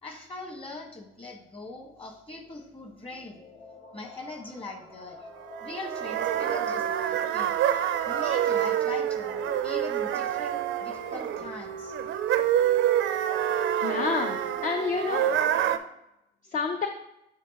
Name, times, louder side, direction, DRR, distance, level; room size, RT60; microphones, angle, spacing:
voice 1, 0.0-3.4 3.9-5.3 5.6-7.6 8.0-11.9, left 2 dB, 25° left, 2 dB, 1.5 m, -41 dB
sound 1, 2.3-15.9, left 3 dB, 60° left, 1.8 m, -51 dB
sound 2, 5.5-15.8, right 10 dB, 75° right, 0.4 m, -27 dB
voice 2, 13.8-15.3 16.5-16.9, left 5 dB, 45° left, 5 dB, 0.5 m, -28 dB
9.6 x 3.7 x 3.0 m, 0.85 s
cardioid pair, 90°, 20 cm